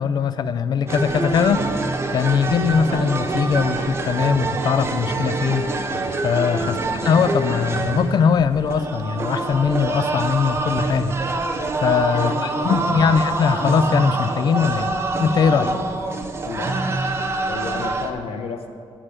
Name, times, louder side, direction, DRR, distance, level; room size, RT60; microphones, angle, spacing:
voice 1, 0.0-1.7 2.1-5.7 6.2-6.8 7.0-11.2 11.8-14.9 15.2-15.7, left 6 dB, 45° left, 13 dB, 0.4 m, -20 dB
sound 1, 0.9-18.1, right 3 dB, 25° right, 0.6 m, -25 dB
voice 2, 12.1-13.6 15.6-15.9 16.4-16.8 17.1-17.2 17.5-18.7, left 5 dB, 90° left, 6 dB, 0.8 m, -32 dB
8.8 x 8.8 x 4.8 m, 2.3 s
wide cardioid pair, 170°, 10 cm